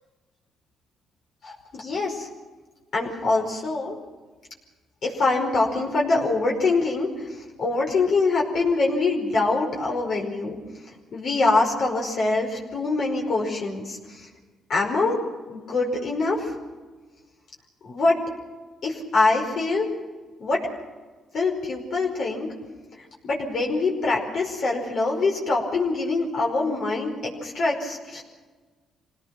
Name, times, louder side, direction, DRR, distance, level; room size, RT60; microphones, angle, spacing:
voice 1, 1.4-2.3 2.9-4.0 5.0-10.6 11.1-14.3 14.7-15.2 15.5-16.5 17.8-18.2 18.8-19.9 20.4-20.6 21.3-22.5 23.2-28.2, left 3 dB, 60° left, -1 dB, 5.1 m, -24 dB
26.5 x 18.0 x 6.1 m, 1.3 s
cardioid pair, 90°, 0 cm